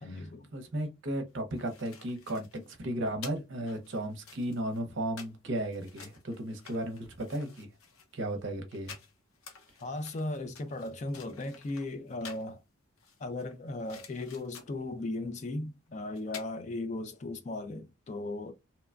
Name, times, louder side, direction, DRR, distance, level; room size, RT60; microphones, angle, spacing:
voice 1, 0.0-0.5 9.8-12.6 13.2-18.5, left 2 dB, 35° left, 0.3 m, -37 dB
voice 2, 0.5-2.5 2.8-7.7 8.1-8.9, right 1 dB, 55° right, 0.7 m, -35 dB
sound 1, 1.3-12.5 13.0-14.9 15.9-16.0 16.2-16.5, left 6 dB, 85° left, 0.7 m, -51 dB
2.9 x 2.2 x 2.3 m
head